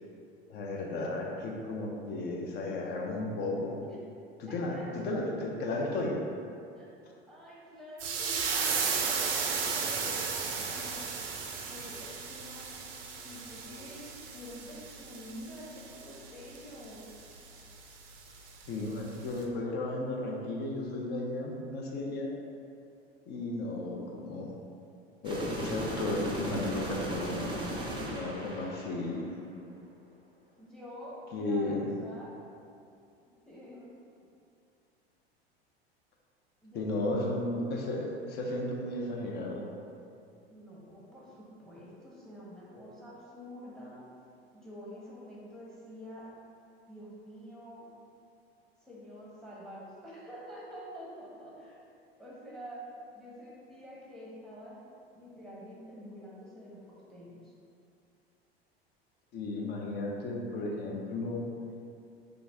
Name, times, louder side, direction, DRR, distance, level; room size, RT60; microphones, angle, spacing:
voice 1, 0.5-3.8 4.4-6.2 18.7-22.3 23.3-24.5 25.2-27.5 28.1-29.3 31.3-31.9 36.7-39.7 59.3-61.5, left 2 dB, 35° left, 0 dB, 0.5 m, -34 dB
voice 2, 4.5-4.9 6.8-6.9 7.3-11.4 11.7-12.7 13.1-17.1 30.6-32.3 33.5-34.0 36.6-37.1 40.5-44.0 44.5-46.4 46.9-47.9 48.8-51.8 52.2-52.9 53.1-54.9 55.1-57.4, equal, ahead, -6 dB, 0.9 m, -47 dB
sound 1, 8.0-18.9 19.3-19.4, right 5 dB, 65° right, 0.5 m, -35 dB
sound 2, 25.2-29.3, right 1 dB, 15° right, 0.5 m, -37 dB
3.9 x 2.3 x 3.4 m, 2.5 s
figure-of-eight pair, 80°, 31 cm